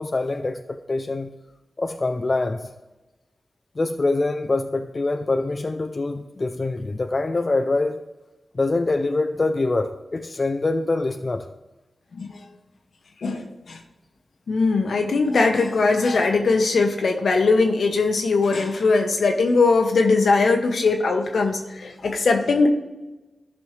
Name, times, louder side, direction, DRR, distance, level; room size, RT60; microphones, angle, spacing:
voice 1, 0.0-1.3 1.8-2.7 3.8-8.0 8.5-11.5, left 2 dB, 40° left, 0.4 m, -24 dB
voice 2, 13.2-13.8 14.5-22.7, left 3 dB, 75° left, 1.0 m, -20 dB
14.0 x 5.3 x 3.2 m
wide cardioid pair, 80°, 0 cm